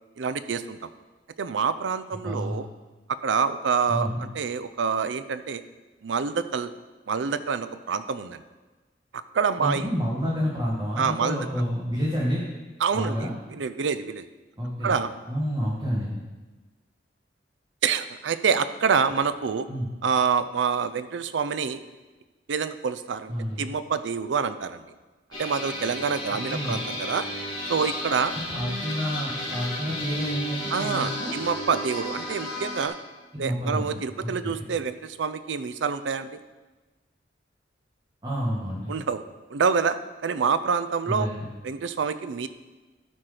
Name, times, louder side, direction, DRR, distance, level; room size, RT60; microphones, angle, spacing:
voice 1, 0.2-0.9 1.4-2.7 3.2-5.6 6.0-6.7 7.1-8.4 9.3-9.9 11.0-11.4 12.8-14.2 14.8-15.1 17.8-19.7 20.0-21.8 22.5-23.3 23.6-24.8 25.4-27.3 27.7-28.3 30.7-32.9 33.4-36.4 38.9-39.2 39.5-40.0 40.2-41.3 41.6-42.5, right 6 dB, 90° right, 12 dB, 0.5 m, -26 dB
voice 2, 2.2-2.5 3.9-4.2 9.6-12.4 12.9-13.3 14.6-14.9 15.3-16.2 19.7-19.9 23.3-23.7 26.5-26.8 28.3-31.3 33.3-33.9 34.2-34.6 38.2-38.9 41.1-41.4, equal, 25° right, -6 dB, 1.4 m, -29 dB
sound 1, 25.3-32.9, left 1 dB, 25° left, 2.6 m, -33 dB
12.5 x 4.5 x 4.9 m, 1.2 s
head